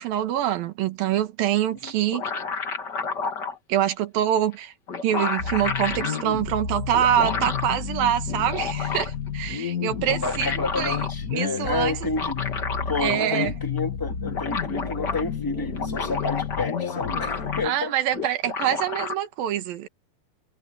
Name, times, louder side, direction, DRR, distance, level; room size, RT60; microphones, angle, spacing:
voice 1, 0.0-2.3 3.7-4.7 5.0-11.0 11.3-12.1 13.0-13.5 17.6-19.9, right 11 dB, 75° right, 3.2 m, -25 dB
sound 1, 1.9-3.6 4.5-4.6 4.9-6.2 6.9-7.7 8.3-9.3 9.9-11.1 12.0-13.5 13.8-13.9 14.1-15.2 15.6-17.8 18.1-19.1, left 4 dB, 35° left, 2.4 m, -31 dB
sound 2, 5.4-17.7, left 7 dB, 55° left, 1.0 m, -31 dB
voice 2, 10.1-12.4 12.9-17.9, left 3 dB, 5° left, 1.9 m, -30 dB
omnidirectional pair, 4.2 m